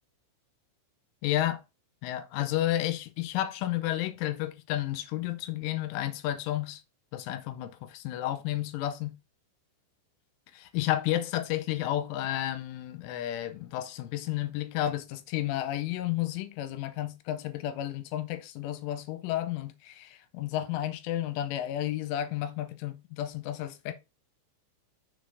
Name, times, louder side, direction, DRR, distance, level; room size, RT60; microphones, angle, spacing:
voice 1, 1.2-1.6 2.0-6.8 7.1-9.2 10.5-23.9, left 13 dB, 85° left, 3.2 m, -32 dB
6.7 x 4.2 x 4.7 m
omnidirectional pair, 5.7 m